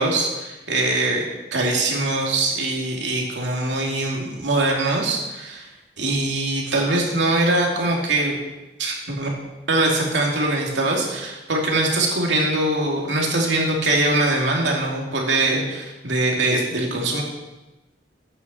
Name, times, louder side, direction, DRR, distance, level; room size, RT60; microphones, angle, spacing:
voice 1, 0.0-5.7 6.0-8.4 8.8-9.3 9.7-17.2, right 2 dB, 90° right, -1 dB, 2.6 m, -22 dB
9.0 x 6.9 x 7.4 m, 1.0 s
head